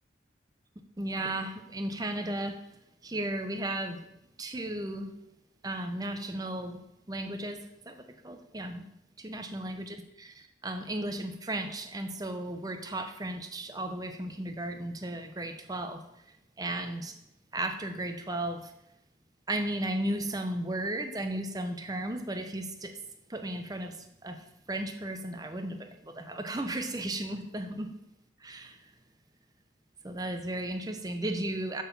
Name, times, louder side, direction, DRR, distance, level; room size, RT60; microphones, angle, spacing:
voice 1, 1.0-2.6 3.0-4.1 4.4-5.1 5.6-6.8 7.1-8.8 9.2-17.2 17.5-18.7 19.5-23.0 23.3-27.9 28.4-28.9 30.0-31.8, right 1 dB, 20° right, 6 dB, 0.8 m, -35 dB
6.5 x 5.8 x 7.0 m, 0.83 s
head